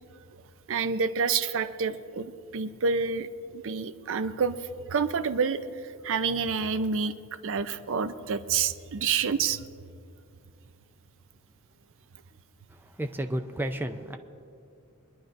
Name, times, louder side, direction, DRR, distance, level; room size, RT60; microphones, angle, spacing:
voice 1, 0.7-3.3 3.5-4.6 4.9-7.1 7.4-9.6, right 5 dB, 60° right, 11 dB, 0.5 m, -28 dB
voice 2, 13.0-14.2, right 1 dB, 10° right, 6 dB, 0.5 m, -31 dB
24.5 x 11.0 x 2.6 m, 2.5 s
head